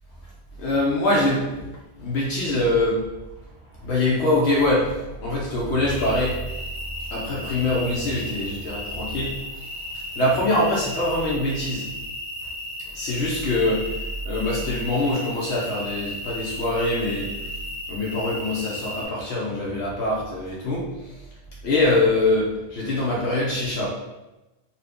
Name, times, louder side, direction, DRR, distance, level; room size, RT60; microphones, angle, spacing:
voice 1, 0.6-1.7 2.0-3.0 3.7-6.6 7.1-11.9 12.9-17.6 17.9-21.2 21.6-23.9, left 1 dB, 75° left, -5 dB, 0.9 m, -24 dB
sound 1, 6.0-19.1, left 1 dB, 40° left, 1.0 m, -35 dB
2.7 x 2.4 x 3.4 m, 1.0 s
omnidirectional pair, 1.1 m